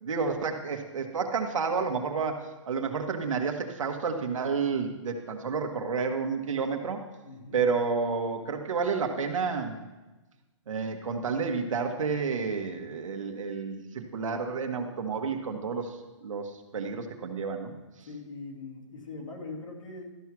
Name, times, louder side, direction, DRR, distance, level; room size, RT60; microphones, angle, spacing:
voice 1, 0.0-7.0 7.5-9.8 10.7-17.7, right 5 dB, 80° right, 3 dB, 1.3 m, -30 dB
voice 2, 7.2-7.6 18.1-20.1, left 3 dB, 80° left, -1 dB, 2.4 m, -41 dB
12.5 x 4.7 x 6.0 m, 1.2 s
hypercardioid pair, 165°, 16 cm